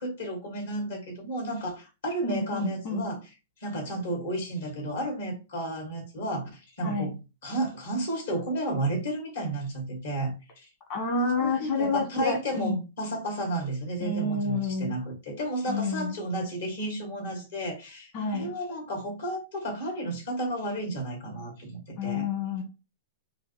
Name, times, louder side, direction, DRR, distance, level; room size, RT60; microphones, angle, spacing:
voice 1, 0.0-3.3 3.6-10.7 11.4-22.3, right 1 dB, 75° left, 2.6 m, -32 dB
voice 2, 2.2-3.1 6.8-7.1 10.9-12.8 14.0-14.9 15.7-16.1 18.1-18.5 22.0-22.6, left 3 dB, 45° left, 1.5 m, -29 dB
5.7 x 2.4 x 3.4 m
hypercardioid pair, 120°, 0 cm